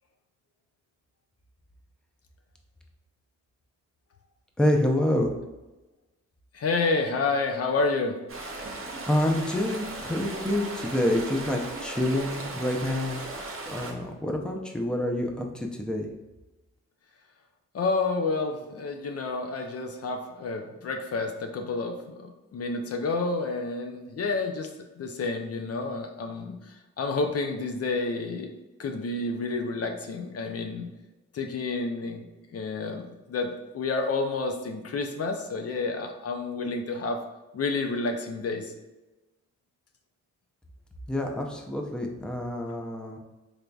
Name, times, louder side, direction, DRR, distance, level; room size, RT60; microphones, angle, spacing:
voice 1, 4.6-5.3 9.1-13.2 13.7-16.1 41.1-43.2, left 1 dB, 5° left, 2 dB, 0.5 m, -27 dB
voice 2, 6.5-8.2 17.7-24.7 25.0-26.6 27.0-28.5 28.8-30.9 31.3-32.3 32.5-37.2 37.5-38.7, left 3 dB, 55° left, 4 dB, 0.5 m, -29 dB
sound 1, 8.3-13.9, right 2 dB, 45° right, 0.8 m, -37 dB
3.8 x 3.3 x 2.3 m, 1.1 s
cardioid pair, 65°, 30 cm